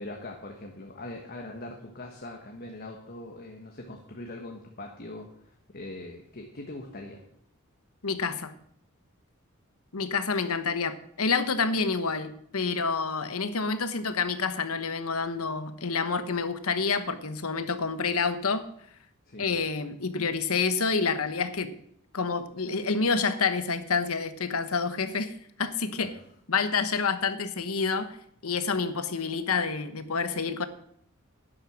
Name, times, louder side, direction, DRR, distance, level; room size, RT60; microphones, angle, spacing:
voice 1, 0.0-7.2 19.3-19.5 26.0-26.1, left 2 dB, 45° left, 2 dB, 1.4 m, -41 dB
voice 2, 8.0-8.5 9.9-18.6 19.4-21.7 22.1-25.3 25.6-26.1 26.5-28.2 28.4-30.6, left 5 dB, 80° left, 11 dB, 1.1 m, -28 dB
11.0 x 10.5 x 5.9 m, 0.67 s
head